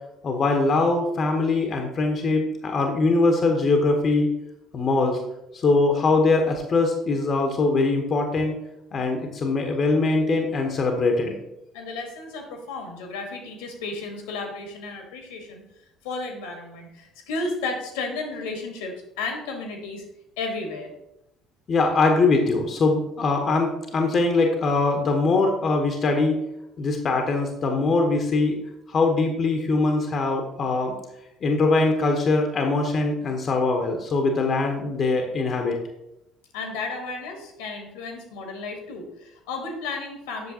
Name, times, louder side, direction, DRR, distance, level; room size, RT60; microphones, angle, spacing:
voice 1, 0.2-4.3 4.7-5.2 5.5-8.6 8.9-11.4 21.7-26.4 26.8-28.6 28.9-31.0 31.4-35.8, left 3 dB, 40° left, 4 dB, 0.9 m, -22 dB
voice 2, 11.7-15.6 16.0-20.0 20.4-20.9 36.5-40.5, left 3 dB, 70° left, 4 dB, 1.3 m, -33 dB
8.0 x 6.2 x 2.8 m, 0.86 s
figure-of-eight pair, 55°, 0 cm